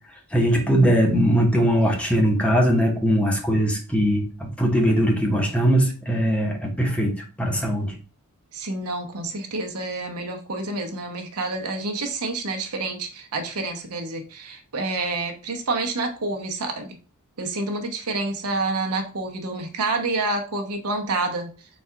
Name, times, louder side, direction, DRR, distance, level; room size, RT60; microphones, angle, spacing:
voice 1, 0.3-8.0, equal, 5° left, 0 dB, 0.8 m, -20 dB
voice 2, 8.5-16.9 17.4-21.5, right 3 dB, 85° right, 4 dB, 0.9 m, -28 dB
4.1 x 2.4 x 4.5 m, 0.36 s
head